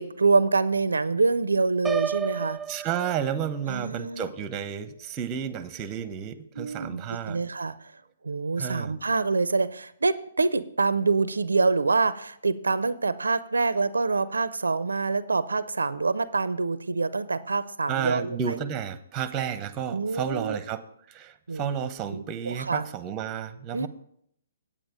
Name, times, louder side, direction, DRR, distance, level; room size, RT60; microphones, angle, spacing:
voice 1, 0.0-2.6 3.7-4.3 6.6-7.9 8.2-18.6 19.9-20.6 21.5-21.7 22.1-22.8 23.7-23.9, right 4 dB, 85° right, 17 dB, 0.4 m, -26 dB
Piano, 1.8-3.8, right 7 dB, 5° right, 0.3 m, -32 dB
voice 2, 2.7-7.4 8.6-8.9 17.9-20.8 21.1-23.9, right 8 dB, 25° right, 13 dB, 0.8 m, -32 dB
8.8 x 8.8 x 5.0 m, 0.71 s
figure-of-eight pair, 130°, 0 cm